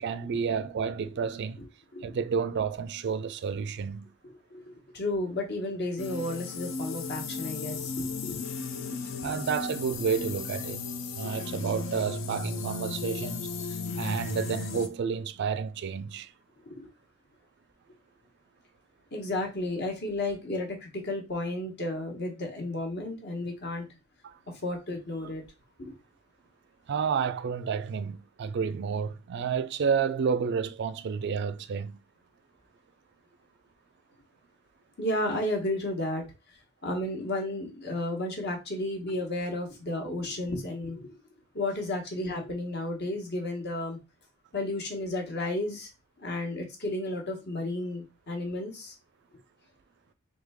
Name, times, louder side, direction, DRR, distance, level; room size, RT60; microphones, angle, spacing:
voice 1, 0.0-1.6 2.0-4.1 9.2-10.8 11.2-16.3 24.2-24.4 26.9-32.0, right 6 dB, 55° right, 0.3 m, -30 dB
voice 2, 4.2-8.4 9.2-9.3 16.6-16.9 19.1-23.9 24.5-25.4 25.8-25.9 35.0-41.2 41.5-44.0 44.5-45.9 46.2-48.9, left 1 dB, 55° left, 1.2 m, -33 dB
sound 1, 6.0-14.9, left 4 dB, 70° left, 0.5 m, -35 dB
3.7 x 3.2 x 3.5 m
head